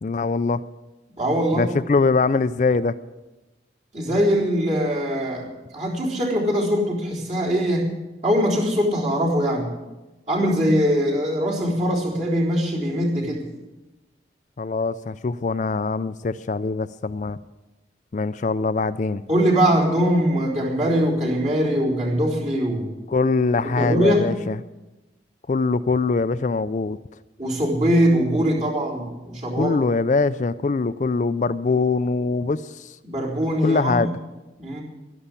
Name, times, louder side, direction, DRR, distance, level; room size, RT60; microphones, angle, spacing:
voice 1, 0.0-0.6 1.5-3.0 14.6-17.4 18.1-19.2 23.1-24.6 25.5-27.0 29.5-33.0 33.6-34.1, left 3 dB, 40° left, 13 dB, 0.4 m, -22 dB
voice 2, 1.2-1.7 3.9-5.5 5.7-7.9 8.2-9.7 10.3-13.4 19.3-22.9 23.8-24.2 27.4-29.7 33.0-34.1 34.6-34.8, equal, 40° right, -4 dB, 3.8 m, -22 dB
12.0 x 11.5 x 8.3 m, 1.1 s
head